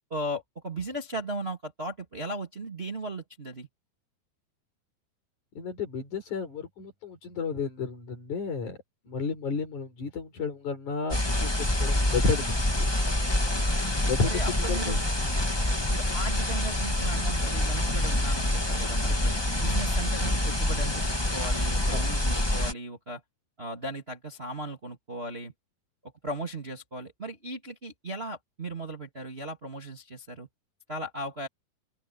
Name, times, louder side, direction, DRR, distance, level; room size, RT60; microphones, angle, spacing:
voice 1, 0.1-3.7 14.2-15.0 15.9-19.3 19.6-23.2 23.6-25.5 26.0-30.5 30.9-31.5, right 1 dB, 20° right, 2.3 m, -37 dB
voice 2, 5.6-8.8 9.1-12.5 12.8-12.9 14.0-14.4 14.7-15.0 21.9-22.1, left 4 dB, 50° left, 6.2 m, -32 dB
sound 1, 11.1-22.7, left 1 dB, 15° left, 0.9 m, -26 dB
open air
omnidirectional pair, 4.5 m